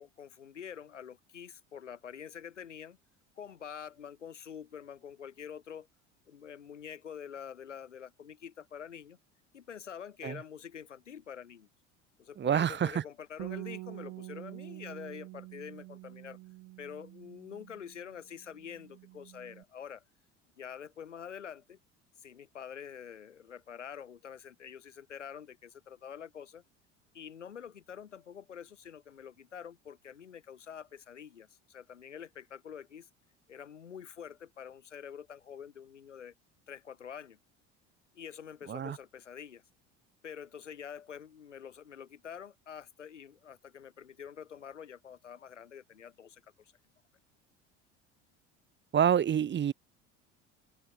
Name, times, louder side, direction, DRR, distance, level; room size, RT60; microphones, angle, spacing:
voice 1, 0.0-3.0 3.4-5.9 6.3-9.2 9.5-11.7 12.2-16.4 16.8-20.0 20.6-21.8 22.2-26.6 27.1-33.1 33.5-36.3 36.7-37.4 38.1-39.6 40.2-46.7, left 8 dB, 80° left, 3.7 m, -46 dB
voice 2, 12.4-13.0 38.7-39.0 48.9-49.7, right 9 dB, 30° right, 1.7 m, -27 dB
Bass guitar, 13.4-18.1 18.4-19.6, right 20 dB, 50° right, 5.2 m, -46 dB
open air
figure-of-eight pair, 65°, 36 cm